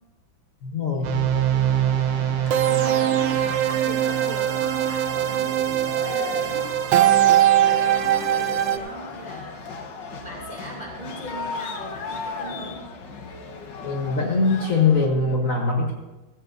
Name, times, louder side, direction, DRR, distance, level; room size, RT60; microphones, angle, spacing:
voice 1, 0.6-1.3 13.8-15.9, left 4 dB, 45° left, 0 dB, 1.4 m, -22 dB
sound 1, 1.0-8.8, right 11 dB, 85° right, 1.5 m, -21 dB
sound 2, 1.3-15.1, left 4 dB, 65° left, 1.6 m, -36 dB
voice 2, 1.9-5.6 6.0-6.7 6.9-9.8 10.2-12.8, equal, 20° right, -2 dB, 2.4 m, -39 dB
15.5 x 15.0 x 2.6 m, 1.1 s
omnidirectional pair, 2.2 m